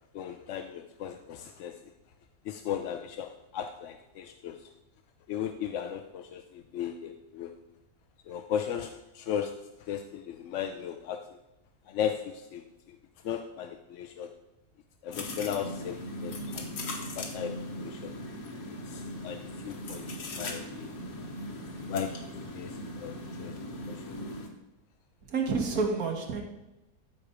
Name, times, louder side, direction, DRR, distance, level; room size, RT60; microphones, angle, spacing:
voice 1, 0.1-1.7 2.4-4.7 5.3-7.5 8.3-9.5 9.8-11.2 11.9-13.0 13.2-14.3 15.0-16.6 17.2-17.5 17.8-18.1 18.7-19.4 19.6-21.0 21.9-22.1 22.5-23.5 23.9-24.2, left 9 dB, 65° left, 0.8 m, -36 dB
sound 1, 15.1-24.5, left 1 dB, 85° left, 1.8 m, -39 dB
voice 2, 25.2-26.4, right 4 dB, 70° right, 1.7 m, -29 dB
14.0 x 4.6 x 5.0 m
omnidirectional pair, 1.6 m